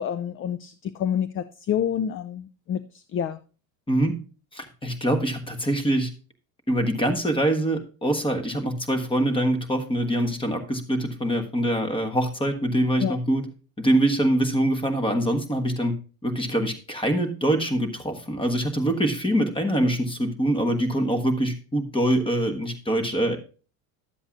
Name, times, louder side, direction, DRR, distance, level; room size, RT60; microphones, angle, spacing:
voice 1, 0.0-3.4 13.0-13.2, left 9 dB, 30° left, 0.4 m, -28 dB
voice 2, 3.9-4.2 4.5-6.1 6.7-13.4 13.8-15.9 16.2-23.4, right 1 dB, 10° left, 1.4 m, -24 dB
11.5 x 7.8 x 2.5 m
supercardioid pair, 100°, 42 cm